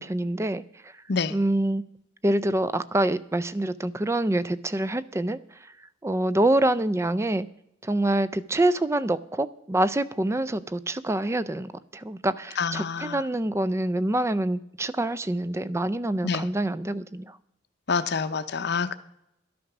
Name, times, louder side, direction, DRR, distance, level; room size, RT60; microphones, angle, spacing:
voice 1, 0.0-0.9 1.3-1.8 2.2-5.7 6.0-7.5 7.8-17.4, right 1 dB, 15° right, 15 dB, 0.4 m, -26 dB
voice 2, 12.6-13.2 16.2-16.5 17.9-18.9, left 5 dB, 60° left, 11 dB, 0.7 m, -27 dB
12.0 x 8.6 x 6.0 m, 0.79 s
head